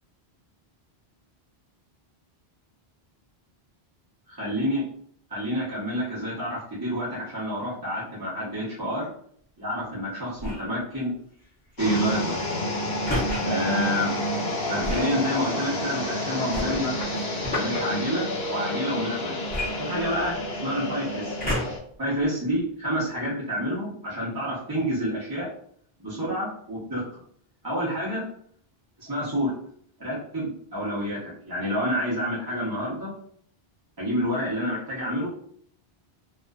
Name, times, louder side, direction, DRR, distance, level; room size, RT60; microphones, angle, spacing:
voice 1, 4.3-4.9 5.3-9.1 9.6-11.1 11.8-12.4 13.4-14.1 14.7-16.9 17.5-19.4 19.8-21.3 22.0-25.5 26.0-27.0 27.6-28.2 29.0-29.5 30.0-33.1 34.0-35.3, equal, 25° right, -9 dB, 0.7 m, -28 dB
sound 1, 10.4-10.8 13.1-13.4 14.8-15.1 16.5-17.8 19.5-20.5 21.4-21.9 22.6-22.7, left 1 dB, 10° left, 0.7 m, -30 dB
sound 2, 11.8-21.8, equal, 75° left, 1.0 m, -29 dB
2.4 x 2.3 x 2.2 m, 0.62 s
omnidirectional pair, 1.1 m